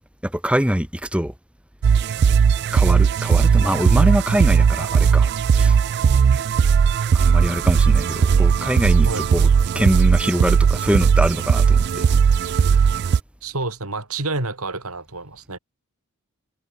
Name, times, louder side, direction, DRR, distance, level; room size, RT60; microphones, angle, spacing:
voice 1, 0.2-1.3 2.7-5.8 7.1-9.5 9.7-12.7, equal, 5° right, 1.2 m, -23 dB
sound 1, 1.8-13.2, right 6 dB, 50° right, 0.3 m, -17 dB
voice 2, 9.1-9.4 13.4-15.6, right 2 dB, 75° right, 5.2 m, -29 dB
head